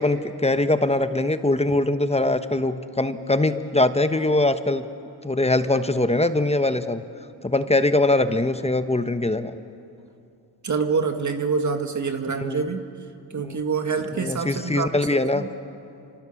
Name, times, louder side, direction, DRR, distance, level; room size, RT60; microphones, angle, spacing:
voice 1, 0.0-4.9 5.2-7.0 7.4-9.5 12.4-12.7 13.4-13.6 14.1-15.5, left 2 dB, 15° left, 10 dB, 1.1 m, -22 dB
voice 2, 10.6-12.9 13.3-15.5, right 5 dB, 40° right, 6 dB, 1.8 m, -26 dB
28.5 x 26.0 x 7.2 m, 2.6 s
cardioid pair, 90°, 44 cm